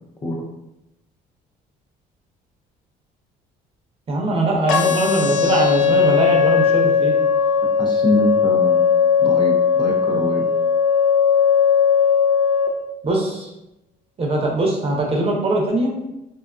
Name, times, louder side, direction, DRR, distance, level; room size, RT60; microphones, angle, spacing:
voice 1, 4.1-7.2 13.0-13.5 14.2-15.9, right 2 dB, 35° right, 0 dB, 0.6 m, -21 dB
sound 1, 4.7-12.7, left 6 dB, 85° left, 0.5 m, -17 dB
voice 2, 7.8-8.9 9.2-10.5, left 1 dB, 25° left, -1 dB, 0.5 m, -24 dB
2.6 x 2.3 x 2.4 m, 0.90 s
cardioid pair, 110°, 17 cm